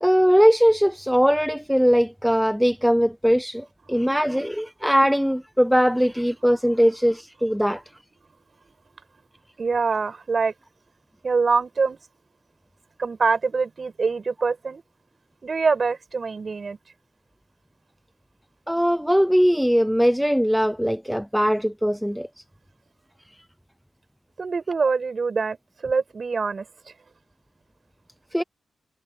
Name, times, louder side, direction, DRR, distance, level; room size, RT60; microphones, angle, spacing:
voice 1, 0.0-7.8 18.7-22.3 28.3-28.4, equal, ahead, 0.4 m, -20 dB
voice 2, 9.6-10.5 11.2-12.0 13.0-14.8 15.4-16.8 24.4-25.6 25.8-26.7, right 4 dB, 35° right, 7.0 m, -24 dB
wide cardioid pair, 130°, 0 cm